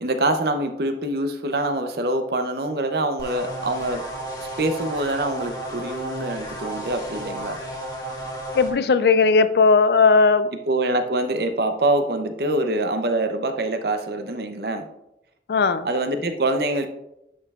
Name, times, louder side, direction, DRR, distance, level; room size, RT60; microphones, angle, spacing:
voice 1, 0.0-4.0 4.4-7.6 10.7-14.9 15.8-16.9, right 2 dB, 60° right, 7 dB, 0.7 m, -25 dB
sound 1, 3.2-8.7, right 1 dB, 20° left, 1.4 m, -33 dB
voice 2, 8.5-10.5 15.5-15.9, left 4 dB, 65° left, 14 dB, 0.4 m, -17 dB
11.0 x 5.5 x 2.4 m, 0.87 s
head